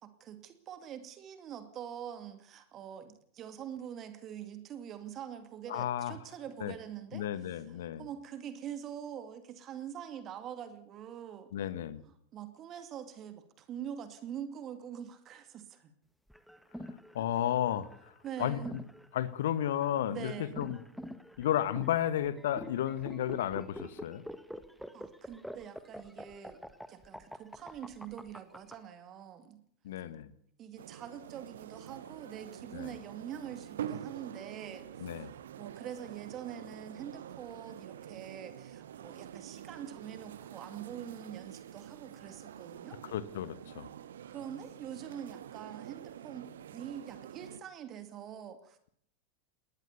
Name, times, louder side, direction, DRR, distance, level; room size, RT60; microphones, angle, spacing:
voice 1, 0.0-11.5 12.0-15.9 17.2-17.4 18.2-18.8 20.1-20.6 24.9-26.6 26.9-29.6 30.6-43.0 44.3-48.8, right 9 dB, 30° right, 10 dB, 2.3 m, -45 dB
voice 2, 5.7-6.1 6.6-6.7 7.1-8.0 11.5-12.0 17.1-17.9 18.4-18.6 19.1-20.3 20.6-20.8 21.4-24.2 29.8-30.3 32.7-32.9 35.0-35.3 43.1-43.9, left 11 dB, 60° left, 15 dB, 1.5 m, -32 dB
sound 1, 16.3-28.7, equal, ahead, 1.6 m, -46 dB
sound 2, 30.8-47.6, right 9 dB, 60° right, 1.1 m, -46 dB
20.5 x 19.5 x 6.9 m, 0.65 s
figure-of-eight pair, 90°, 0 cm